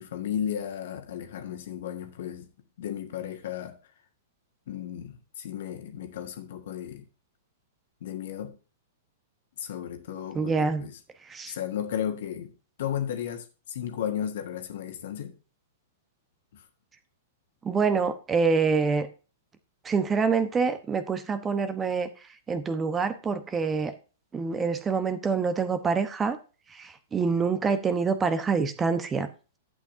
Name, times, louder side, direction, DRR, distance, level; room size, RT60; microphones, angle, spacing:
voice 1, 0.0-2.5 2.8-3.7 4.7-7.0 8.0-8.6 9.6-11.0 11.5-12.5 12.8-15.3 16.5-16.6, left 9 dB, 60° left, 1.7 m, -34 dB
voice 2, 10.3-10.8 11.3-11.5 17.6-19.1 19.8-22.1 22.5-23.9 24.3-26.4 26.7-29.3, right 5 dB, 20° right, 1.0 m, -26 dB
11.5 x 8.4 x 2.7 m
figure-of-eight pair, 105°, 0 cm